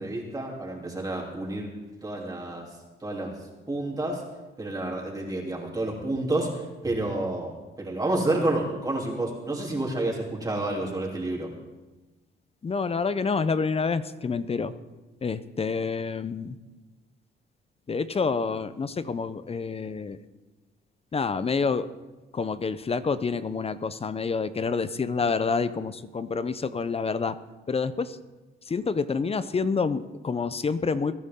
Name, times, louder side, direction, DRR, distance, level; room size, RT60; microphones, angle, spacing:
voice 1, 0.0-1.7 2.0-2.7 3.0-3.4 3.7-4.2 4.6-7.5 7.8-11.5, right 2 dB, 20° right, -2 dB, 3.2 m, -29 dB
voice 2, 12.6-14.7 15.2-16.6 17.9-20.2 21.1-21.9 22.3-27.3 27.7-28.2 28.7-31.2, left 5 dB, 30° left, 14 dB, 0.7 m, -28 dB
21.0 x 10.5 x 3.8 m, 1.2 s
cardioid pair, 90°, 20 cm